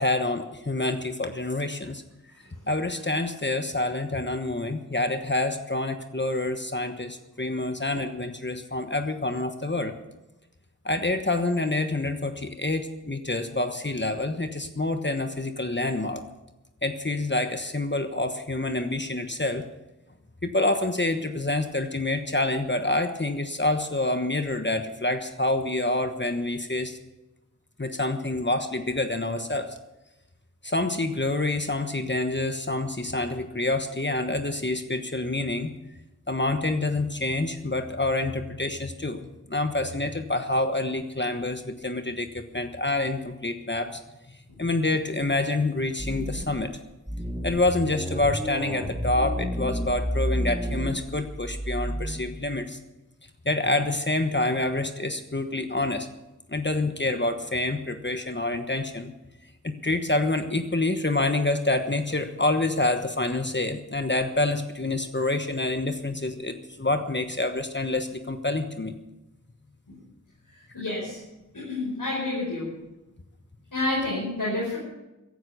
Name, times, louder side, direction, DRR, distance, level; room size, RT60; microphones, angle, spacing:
voice 1, 0.0-2.0 2.7-9.9 10.8-16.2 16.8-19.6 20.4-27.0 27.8-29.7 30.6-35.7 36.3-39.2 39.5-44.0 44.6-46.7 47.4-52.8 53.4-56.1 56.5-59.1 59.6-69.0, left 2 dB, 35° left, 7 dB, 1.2 m, -27 dB
sound 1, 46.0-46.6 47.1-52.1, equal, 5° right, 2.6 m, -30 dB
voice 2, 70.5-71.2 71.5-72.7 73.7-74.8, left 2 dB, 85° left, -6 dB, 5.4 m, -29 dB
15.0 x 11.5 x 6.8 m, 1.0 s
wide cardioid pair, 45°, 32 cm